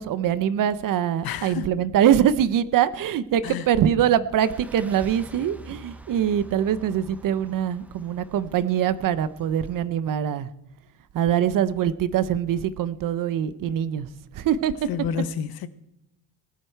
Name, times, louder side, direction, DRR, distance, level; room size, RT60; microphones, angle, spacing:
voice 1, 0.0-10.5 11.1-14.1 14.3-14.7, right 10 dB, 50° right, 0.7 m, -23 dB
voice 2, 1.2-1.7 3.4-3.7 14.9-15.7, left 8 dB, 55° left, 0.8 m, -29 dB
sound 1, 4.4-9.9, right 1 dB, 5° right, 0.5 m, -47 dB
19.0 x 11.0 x 4.5 m
cardioid pair, 175°, 42 cm